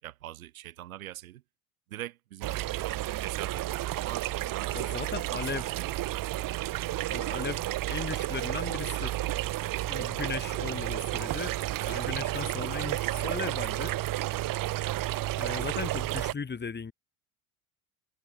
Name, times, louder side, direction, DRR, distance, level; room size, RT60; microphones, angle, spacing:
voice 1, 0.0-1.4 1.9-3.7 3.9-4.9 5.3-6.0, right 14 dB, 80° right, 6.5 m, -42 dB
sound 1, 2.4-16.3, right 16 dB, 50° right, 3.4 m, -32 dB
voice 2, 4.7-5.6 7.1-7.6 7.9-9.1 9.9-13.9 15.4-16.9, left 5 dB, 25° left, 4.6 m, -37 dB
hypercardioid pair, 70°, 42 cm